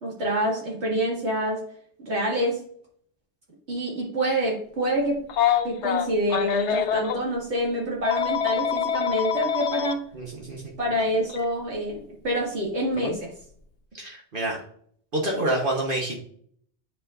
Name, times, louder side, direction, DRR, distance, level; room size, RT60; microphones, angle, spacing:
voice 1, 0.0-1.6 2.0-2.6 3.7-5.2 5.6-10.0 10.8-13.3, equal, 75° right, -3 dB, 2.4 m, -26 dB
Telephone, 5.3-7.2 8.0-9.9 11.3-11.4 13.0-13.2, left 8 dB, 90° left, 1.0 m, -25 dB
voice 2, 10.1-10.7 14.0-14.6 15.1-16.2, right 1 dB, 50° right, -1 dB, 1.3 m, -27 dB
8.8 x 5.2 x 2.5 m, 0.62 s
omnidirectional pair, 1.1 m